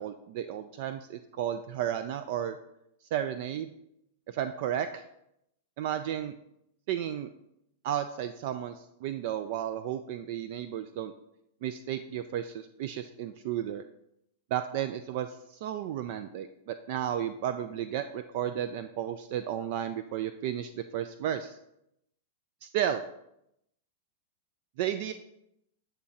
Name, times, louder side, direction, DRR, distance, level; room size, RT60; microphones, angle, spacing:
voice 1, 0.0-2.6 3.1-3.7 4.3-5.0 5.8-6.3 6.9-7.3 7.8-11.1 11.6-13.8 14.5-21.6 22.6-23.0 24.8-25.1, right 10 dB, 50° right, 10 dB, 0.3 m, -33 dB
8.0 x 3.0 x 4.9 m, 0.81 s
figure-of-eight pair, 95°, 0 cm